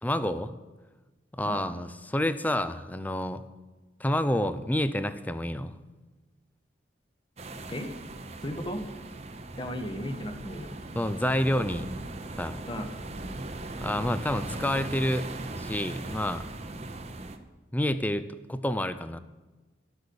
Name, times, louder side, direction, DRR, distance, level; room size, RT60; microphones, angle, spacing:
voice 1, 0.0-0.5 1.3-3.4 4.0-5.8 10.9-11.9 12.4-12.6 13.8-15.3 15.6-16.4 17.7-19.2, left 1 dB, 10° left, 12 dB, 0.5 m, -28 dB
sound 1, 7.4-17.4, right 2 dB, 35° right, 0.8 m, -39 dB
voice 2, 8.4-8.9 9.6-10.7 12.7-13.0, equal, 25° left, 6 dB, 1.1 m, -35 dB
12.0 x 8.2 x 6.9 m, 1.2 s
head